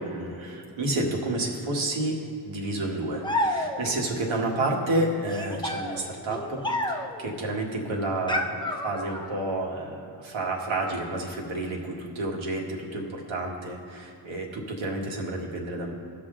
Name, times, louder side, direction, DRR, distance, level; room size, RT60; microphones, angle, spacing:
voice 1, 0.0-2.2 2.5-6.6 6.9-15.9, right 2 dB, 70° right, 0 dB, 1.8 m, -30 dB
sound 1, 3.2-4.1 5.3-7.3 8.3-9.4, left 1 dB, 10° left, 0.8 m, -30 dB
16.0 x 6.0 x 3.8 m, 2.6 s
cardioid pair, 60°, 49 cm